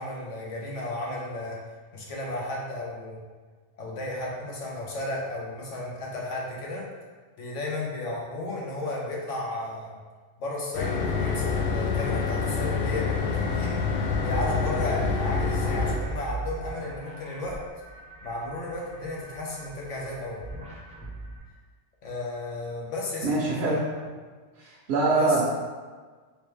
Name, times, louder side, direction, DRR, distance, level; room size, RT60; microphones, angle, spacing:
voice 1, 0.0-1.6 1.9-3.2 3.8-6.8 7.4-10.0 10.4-13.8 14.2-17.6 18.2-20.4 22.0-23.8 25.1-25.4, left 2 dB, 85° left, -3 dB, 1.2 m, -33 dB
sound 1, 10.7-16.0, left 5 dB, 60° left, 0.7 m, -27 dB
sound 2, 14.1-21.4, right 3 dB, 10° right, 0.5 m, -38 dB
voice 2, 23.2-23.8 24.6-25.4, right 3 dB, 70° right, -5 dB, 0.8 m, -24 dB
3.3 x 3.2 x 3.2 m, 1.5 s
omnidirectional pair, 1.2 m